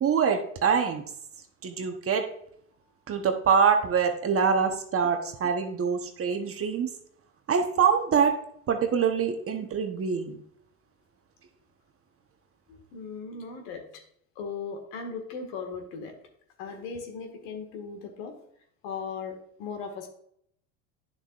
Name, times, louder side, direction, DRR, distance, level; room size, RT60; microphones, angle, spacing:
voice 1, 0.0-1.0 1.6-2.3 3.1-6.9 7.5-8.4 8.7-10.4, right 6 dB, 30° right, 6 dB, 1.0 m, -24 dB
voice 2, 12.7-13.8 14.4-16.1 16.6-18.3 18.8-20.1, left 5 dB, 65° left, 4 dB, 1.9 m, -37 dB
10.5 x 6.5 x 2.5 m, 0.69 s
hypercardioid pair, 80°, 42 cm